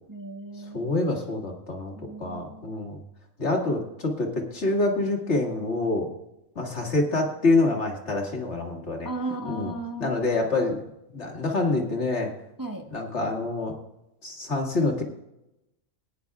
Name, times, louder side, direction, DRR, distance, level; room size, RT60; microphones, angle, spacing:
voice 1, 0.1-0.9 1.9-2.8 9.0-10.2 12.6-12.8, right 2 dB, 15° right, 1 dB, 1.3 m, -35 dB
voice 2, 0.7-1.9 2.2-3.0 3.4-6.1 6.6-9.1 9.5-9.7 10.0-10.8 11.1-12.3 12.9-13.8 14.2-15.0, left 2 dB, 55° left, 0 dB, 2.2 m, -26 dB
20.0 x 10.0 x 2.4 m, 0.89 s
omnidirectional pair, 1.4 m